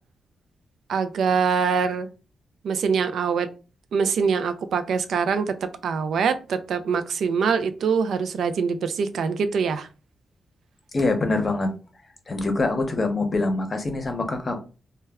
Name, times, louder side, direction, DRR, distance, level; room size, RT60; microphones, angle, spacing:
voice 1, 0.9-2.1 2.6-3.5 3.9-5.5 5.8-9.9, right 6 dB, 80° right, 10 dB, 0.3 m, -24 dB
voice 2, 10.9-11.7 12.3-14.6, left 2 dB, 40° left, 6 dB, 0.7 m, -24 dB
2.1 x 2.1 x 3.4 m, 0.34 s
cardioid pair, 75°, 0 cm